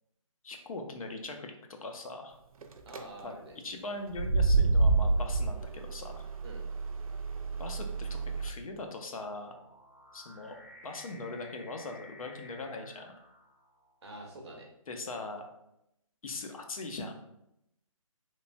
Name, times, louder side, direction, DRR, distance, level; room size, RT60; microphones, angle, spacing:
voice 1, 0.4-1.5 1.8-2.4 3.2-3.3 3.6-6.3 7.6-9.5 10.1-10.6 10.8-13.1 14.9-15.5 16.2-17.2, left 2 dB, 80° left, 4 dB, 0.5 m, -40 dB
sound 1, 2.6-3.0 4.1-8.5, right 3 dB, 85° right, 0.4 m, -28 dB
voice 2, 2.9-3.6 6.4-6.6 14.0-14.7, right 1 dB, 50° right, 0 dB, 0.8 m, -46 dB
sound 2, 7.0-14.1, left 2 dB, 25° left, 0.3 m, -56 dB
3.1 x 2.1 x 2.4 m, 0.82 s
hypercardioid pair, 170°, 18 cm